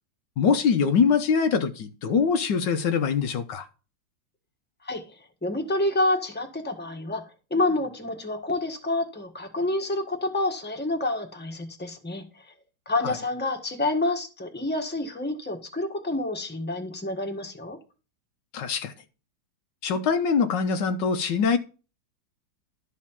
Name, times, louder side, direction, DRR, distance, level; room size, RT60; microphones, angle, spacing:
voice 1, 0.4-3.7 13.0-13.1 18.5-18.9 19.8-21.6, left 6 dB, 75° left, 1.5 m, -23 dB
voice 2, 5.4-7.2 7.5-12.4 12.8-17.8, left 2 dB, 5° left, 1.3 m, -28 dB
12.5 x 4.2 x 7.2 m
omnidirectional pair, 2.0 m